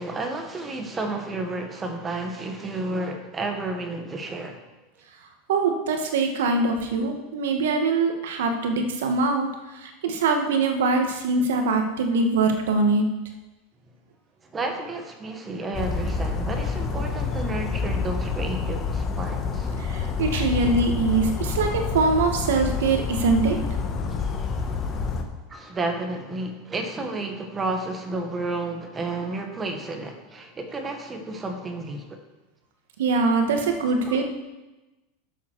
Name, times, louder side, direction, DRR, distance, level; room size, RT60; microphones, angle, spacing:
voice 1, 0.0-4.7 14.4-19.7 20.4-20.5 24.2-24.3 25.5-32.2 34.0-34.3, right 2 dB, 20° right, 4 dB, 1.4 m, -31 dB
voice 2, 5.5-13.1 19.8-24.1 33.0-34.3, right 3 dB, 85° right, 4 dB, 1.6 m, -23 dB
Bird vocalization bird call bird song, 15.7-25.2, left 5 dB, 30° left, 1.3 m, -28 dB
11.0 x 7.5 x 4.7 m, 1.1 s
supercardioid pair, 130°, 0 cm